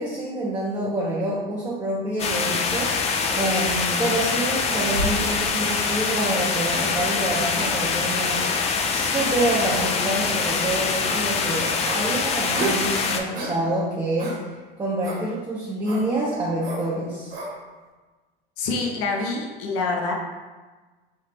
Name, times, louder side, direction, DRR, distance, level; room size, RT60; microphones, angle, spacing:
voice 1, 0.0-2.9 3.3-17.3, right 1 dB, 15° right, -6 dB, 0.7 m, -27 dB
sound 1, 2.2-13.2, left 5 dB, 20° left, 0.3 m, -24 dB
sound 2, 3.3-3.5 3.9-4.1 4.7-5.3 5.8-6.0 6.7-6.9 7.5-7.7 8.4-8.5 9.1-9.3 9.7-9.9 10.4-10.6 11.1-11.2 11.8-12.0 12.5-12.8 13.3-13.6 14.2-14.4 15.0-15.2 15.8-16.1 16.6-16.8 17.3-17.5, right 2 dB, 75° right, 1.1 m, -31 dB
voice 2, 18.6-20.1, left 3 dB, 50° left, 1 dB, 0.7 m, -26 dB
3.2 x 2.7 x 3.3 m, 1.3 s
hypercardioid pair, 85°, 30 cm